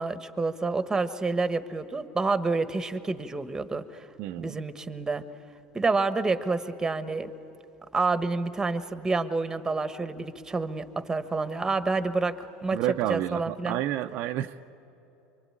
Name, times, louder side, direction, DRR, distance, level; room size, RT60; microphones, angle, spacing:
voice 1, 0.0-4.1 4.4-5.2 5.7-7.3 7.9-12.8 13.1-13.8, right 3 dB, 15° right, 11 dB, 1.3 m, -28 dB
voice 2, 4.2-4.6 12.7-14.7, right 13 dB, 60° right, 7 dB, 0.6 m, -30 dB
24.0 x 24.0 x 8.9 m, 3.0 s
supercardioid pair, 105°, 4 cm